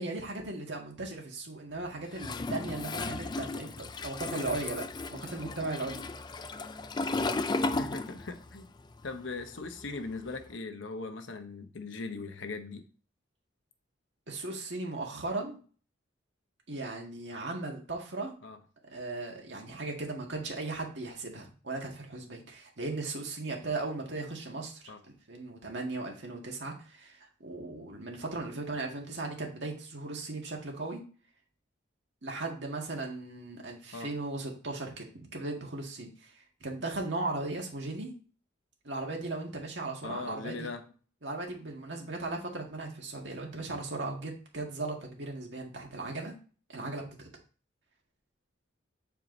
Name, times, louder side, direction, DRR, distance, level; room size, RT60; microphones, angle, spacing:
voice 1, 0.0-6.0 14.3-15.6 16.7-18.3 18.9-31.0 32.2-38.1 38.8-40.7 41.2-46.4 46.7-47.3, right 2 dB, 65° right, 0 dB, 2.0 m, -37 dB
Toilet flush, 2.1-8.6 8.8-10.4, left 3 dB, 20° left, 0.3 m, -35 dB
voice 2, 7.7-8.7 9.0-12.8 18.4-18.6 24.9-25.0 33.9-34.2 40.0-40.9, left 3 dB, 75° left, 7 dB, 1.0 m, -40 dB
7.8 x 4.6 x 3.9 m, 0.39 s
head